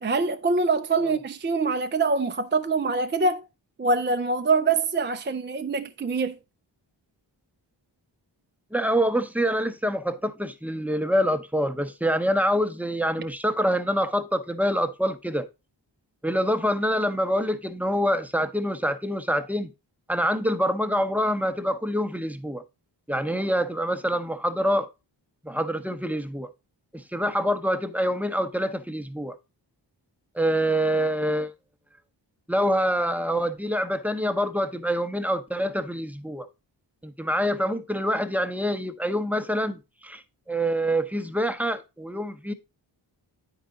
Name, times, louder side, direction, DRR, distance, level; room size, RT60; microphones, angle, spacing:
voice 1, 0.0-3.5 3.8-6.4, right 4 dB, 25° right, 0.4 m, -24 dB
voice 2, 8.7-15.5 16.2-19.7 20.1-22.6 23.1-24.9 25.4-26.5 26.9-29.3 30.3-31.5 32.5-36.5 37.0-40.2 40.5-42.5, equal, 5° right, 0.7 m, -26 dB
9.5 x 4.7 x 3.9 m
wide cardioid pair, 80°, 45 cm